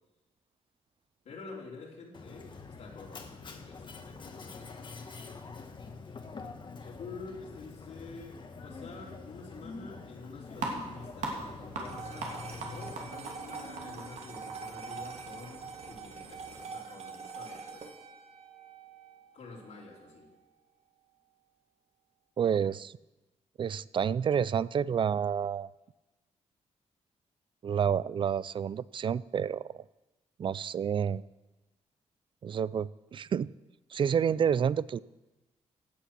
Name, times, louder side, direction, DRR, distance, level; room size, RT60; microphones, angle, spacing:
voice 1, 1.3-4.9 6.8-17.9 19.3-20.3, left 3 dB, 75° left, -4 dB, 3.5 m, -48 dB
Mechanisms, 2.1-12.9, left 4 dB, 40° left, 1.4 m, -46 dB
sound 1, 10.5-16.7, right 3 dB, 85° right, 2.7 m, -42 dB
sound 2, 11.8-20.3, right 5 dB, 60° right, 1.7 m, -45 dB
voice 2, 22.4-22.9 23.6-25.7 27.6-29.8 30.4-31.2 32.4-33.5 33.9-35.0, right 8 dB, 45° right, 20 dB, 0.4 m, -29 dB
16.0 x 8.5 x 6.0 m, 1.1 s
cardioid pair, 110°, 12 cm